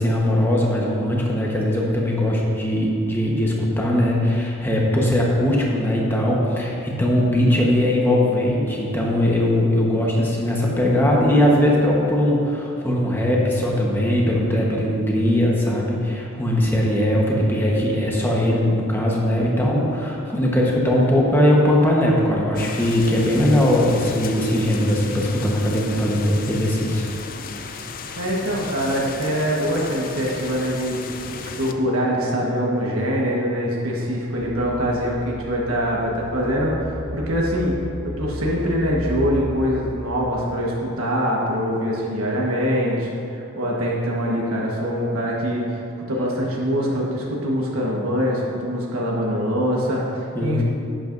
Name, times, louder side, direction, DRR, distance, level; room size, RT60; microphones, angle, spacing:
voice 1, 0.0-27.1 50.3-50.6, left 1 dB, 10° left, -3 dB, 1.1 m, -20 dB
sound 1, 22.5-31.7, left 4 dB, 40° left, 0.4 m, -35 dB
voice 2, 28.2-31.0 31.3-37.7 38.0-45.6 46.1-50.6, equal, 85° right, -3 dB, 1.4 m, -23 dB
sound 2, 34.3-40.5, equal, 35° right, 1.5 m, -34 dB
11.0 x 8.9 x 2.6 m, 2.6 s
head